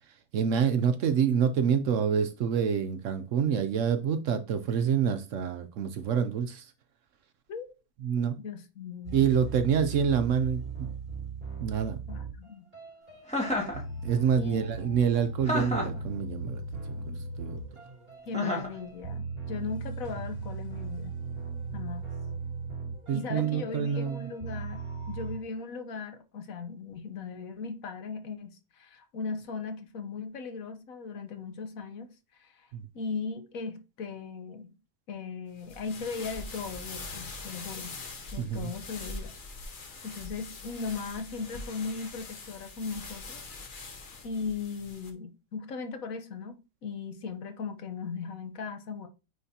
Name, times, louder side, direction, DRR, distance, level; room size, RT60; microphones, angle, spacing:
voice 1, 0.3-6.7 8.0-8.4 9.1-10.9 11.6-12.0 14.0-17.6 23.1-24.3 32.7-32.9 38.4-38.7, right 7 dB, 65° right, 0.9 m, -27 dB
voice 2, 8.4-9.3 12.1-12.7 14.4-14.7 18.3-21.2 21.7-22.1 23.1-32.7 32.9-34.7 35.1-37.9 38.3-39.3 40.0-43.4 44.2-49.1, left 5 dB, 65° left, 1.3 m, -38 dB
sound 1, 9.0-25.4, right 4 dB, 40° right, 3.6 m, -38 dB
Chuckle chortle, 13.3-13.8 15.4-16.0 18.3-18.8, left 1 dB, 5° left, 1.8 m, -29 dB
sound 2, 35.6-45.1, left 3 dB, 40° left, 0.9 m, -43 dB
9.3 x 3.8 x 2.8 m
omnidirectional pair, 1.6 m